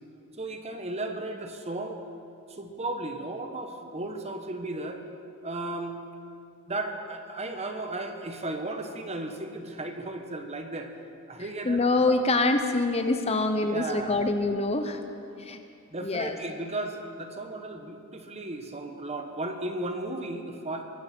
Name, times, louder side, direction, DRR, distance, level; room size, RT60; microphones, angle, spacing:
voice 1, 0.4-2.0 2.5-5.0 5.4-6.0 6.7-10.9 11.3-11.9 13.6-14.2 15.9-20.8, right 2 dB, 30° right, 5 dB, 1.2 m, -35 dB
voice 2, 11.6-15.0 15.4-15.6 16.0-16.4, left 2 dB, 30° left, 7 dB, 0.7 m, -25 dB
23.0 x 12.5 x 4.5 m, 2.5 s
head